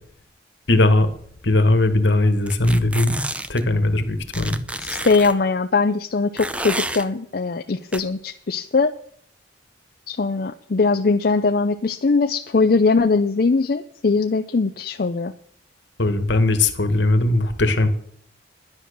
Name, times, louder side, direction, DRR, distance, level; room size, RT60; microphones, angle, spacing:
voice 1, 0.7-1.1 1.4-3.2 3.5-4.6 16.0-17.9, left 2 dB, 70° left, 9 dB, 1.5 m, -19 dB
sound 1, 2.5-3.6 4.3-5.3 6.4-7.0 7.9-8.0, right 1 dB, 5° right, 0.5 m, -29 dB
voice 2, 4.8-8.9 10.1-15.3, left 4 dB, 50° left, 7 dB, 0.5 m, -21 dB
10.5 x 10.0 x 6.7 m, 0.62 s
head